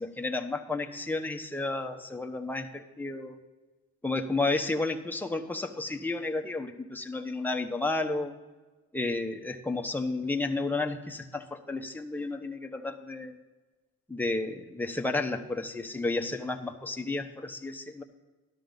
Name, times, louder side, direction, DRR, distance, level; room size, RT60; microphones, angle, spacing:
voice 1, 0.0-3.4 4.0-8.4 8.9-13.4 14.1-18.0, left 2 dB, 5° left, 3 dB, 1.0 m, -32 dB
13.0 x 12.0 x 4.0 m, 1.2 s
cardioid pair, 90°, 30 cm